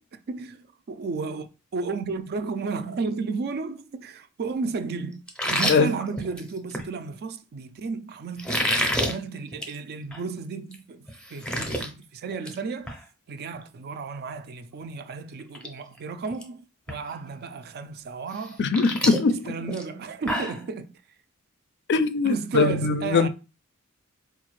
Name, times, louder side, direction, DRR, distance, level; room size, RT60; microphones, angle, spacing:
voice 1, 0.3-5.2 5.5-8.5 9.0-13.0 13.3-16.6 16.9-18.6 19.5-20.9 22.2-23.3, right 4 dB, 50° right, 0.4 m, -33 dB
sound 1, 5.3-6.9 8.4-9.1 9.5-9.8 10.1-10.2 10.7-10.8 11.1-11.9 12.2-12.6 12.9-13.0 14.8-14.9 15.4-15.7 16.0-16.4 16.9-17.0 18.3-20.6, equal, 5° left, 0.6 m, -28 dB
voice 2, 18.6-19.5 21.9-23.3, left 4 dB, 55° left, 0.4 m, -21 dB
4.3 x 2.4 x 3.0 m
head